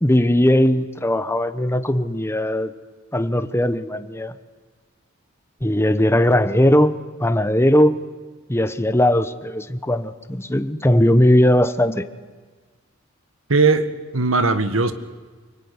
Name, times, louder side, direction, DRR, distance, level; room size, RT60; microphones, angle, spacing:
voice 1, 0.0-2.7 3.1-4.3 5.6-6.9 7.2-8.0 8.5-12.1, left 1 dB, 10° left, 11 dB, 1.1 m, -18 dB
voice 2, 13.5-14.9, right 3 dB, 70° right, 11 dB, 1.8 m, -19 dB
25.0 x 22.5 x 9.7 m, 1.4 s
head